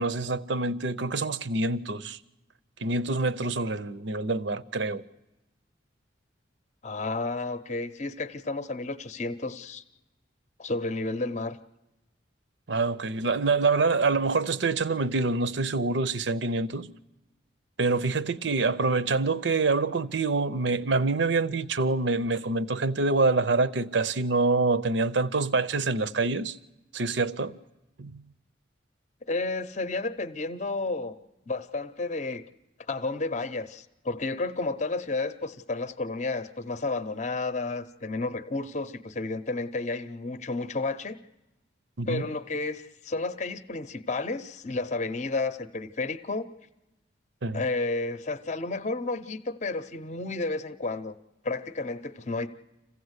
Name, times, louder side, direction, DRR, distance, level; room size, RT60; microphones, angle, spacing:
voice 1, 0.0-2.2 2.8-5.0 12.7-16.9 17.8-26.6 26.9-27.5 28.0-28.2 42.0-42.3 47.4-47.6, right 3 dB, 70° right, 0.7 m, -26 dB
voice 2, 6.8-9.8 10.6-11.6 29.3-31.2 31.5-32.5 32.9-41.2 42.1-46.5 47.5-51.2 51.4-52.5, left 3 dB, 35° left, 0.7 m, -31 dB
26.5 x 15.5 x 8.1 m
head